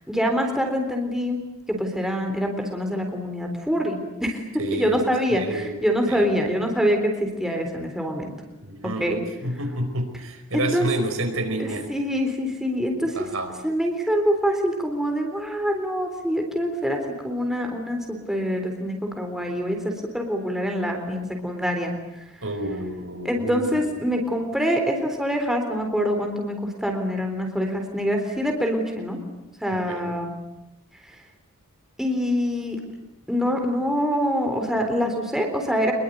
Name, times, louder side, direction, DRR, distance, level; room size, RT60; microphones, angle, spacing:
voice 1, 0.1-1.4 1.7-4.4 4.7-8.3 9.0-9.2 10.5-10.9 11.6-13.2 13.6-21.9 23.2-29.2 29.6-30.3 31.1-31.2 32.0-32.8 33.3-35.9, equal, ahead, 3 dB, 3.8 m, -25 dB
voice 2, 4.6-5.0 5.3-5.7 6.1-6.3 8.6-9.1 9.4-11.9 13.1-13.5 22.4-23.9 29.7-30.1, right 1 dB, 65° right, 6 dB, 4.9 m, -29 dB
25.5 x 22.5 x 9.4 m, 0.96 s
head